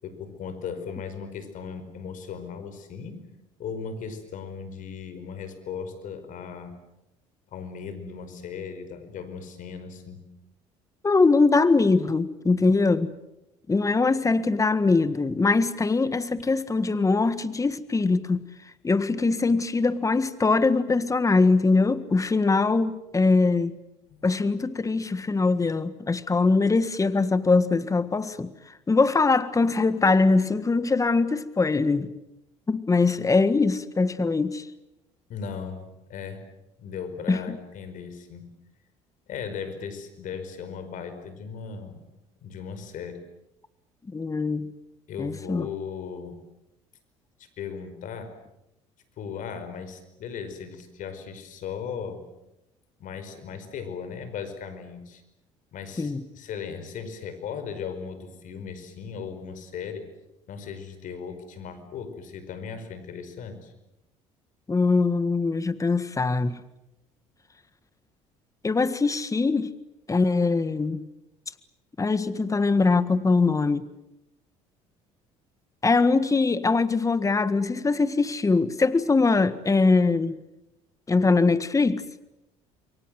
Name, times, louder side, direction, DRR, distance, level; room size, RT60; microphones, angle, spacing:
voice 1, 0.0-3.2 3.6-6.7 7.5-10.2 24.1-24.2 35.3-36.4 36.8-38.5 39.3-42.0 42.4-43.2 45.1-46.4 47.4-48.3 49.2-52.2 53.0-55.2 55.7-60.1 60.5-63.7, left 6 dB, 60° left, 5.2 m, -37 dB
voice 2, 11.0-13.1 13.7-18.5 18.8-23.7 24.2-28.5 28.9-32.1 32.7-34.7 37.3-37.6 44.1-44.7 45.2-45.7 56.0-56.2 64.7-66.6 68.6-69.7 70.1-71.0 72.0-73.9 75.8-80.4 81.1-82.0, left 3 dB, 20° left, 1.6 m, -22 dB
28.5 x 23.5 x 7.8 m
supercardioid pair, 70°, 15 cm